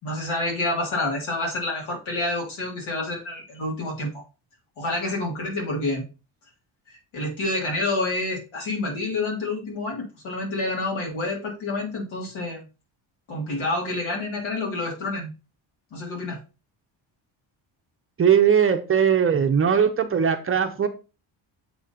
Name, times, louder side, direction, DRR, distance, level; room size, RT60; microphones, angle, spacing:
voice 1, 0.0-4.2 4.8-6.0 6.9-12.7 13.3-15.3 15.9-16.4, left 2 dB, 90° left, 3.3 m, -28 dB
voice 2, 18.2-20.9, right 7 dB, 30° right, 0.6 m, -19 dB
7.6 x 3.7 x 4.1 m
cardioid pair, 170°, 48 cm